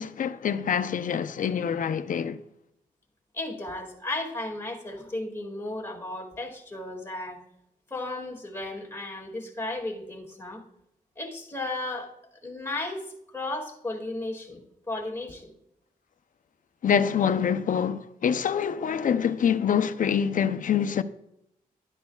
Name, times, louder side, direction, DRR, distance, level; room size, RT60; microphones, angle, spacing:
voice 1, 0.0-2.4 16.8-21.0, left 8 dB, 60° left, 0.6 m, -25 dB
voice 2, 3.3-7.4 7.9-10.6 11.2-12.1 12.4-15.5, left 2 dB, 15° left, 2.2 m, -34 dB
12.0 x 11.0 x 2.4 m
cardioid pair, 80°, 15 cm